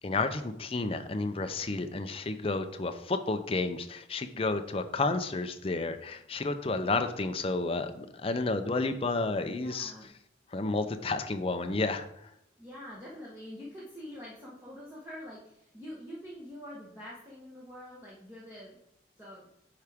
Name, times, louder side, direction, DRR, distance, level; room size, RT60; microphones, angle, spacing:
voice 1, 0.0-9.9 10.5-12.1, left 3 dB, 30° left, 8 dB, 0.5 m, -31 dB
voice 2, 9.4-10.1 12.6-18.8 19.2-19.5, equal, 10° right, -7 dB, 1.2 m, -45 dB
9.1 x 4.8 x 3.5 m, 0.78 s
head